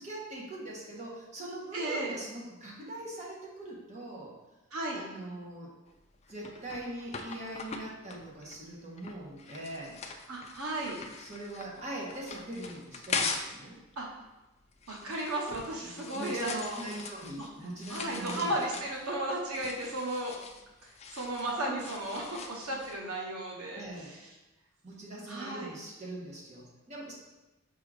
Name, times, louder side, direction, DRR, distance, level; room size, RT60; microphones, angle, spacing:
voice 1, 0.0-4.3 4.9-5.7 6.3-10.0 11.2-13.8 15.8-18.5 23.7-24.1 24.8-27.1, right 1 dB, 30° right, -4 dB, 1.3 m, -41 dB
voice 2, 1.7-2.1 4.7-5.0 10.3-11.0 14.0-14.1 14.9-16.8 17.4-17.5 17.9-20.4 20.8-24.3 25.3-25.7, right 1 dB, 85° right, -1 dB, 1.1 m, -35 dB
sound 1, 5.9-13.6 13.9-23.0, left 5 dB, 30° left, 0.4 m, -41 dB
5.6 x 3.8 x 4.9 m, 1.1 s
head